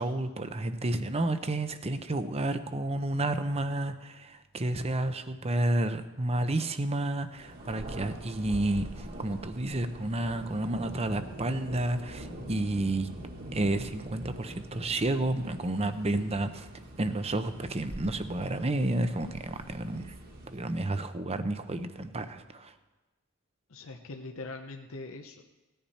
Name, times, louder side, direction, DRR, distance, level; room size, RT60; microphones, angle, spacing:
voice 1, 0.0-13.1 13.5-16.7 17.0-20.2 20.5-22.7, right 2 dB, 30° right, 10 dB, 0.8 m, -31 dB
Thunder, 7.3-21.0, right 1 dB, 45° right, 1.8 m, -44 dB
voice 2, 23.7-25.4, left 3 dB, 65° left, 4 dB, 0.9 m, -42 dB
17.5 x 10.5 x 4.3 m, 1.2 s
head